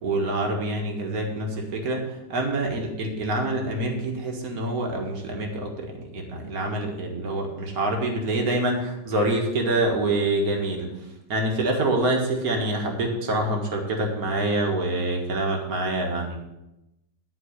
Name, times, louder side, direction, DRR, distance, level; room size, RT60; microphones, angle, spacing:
voice 1, 0.0-10.9 11.3-16.4, right 2 dB, 55° right, 1 dB, 2.1 m, -26 dB
11.5 x 4.6 x 8.0 m, 0.93 s
omnidirectional pair, 2.0 m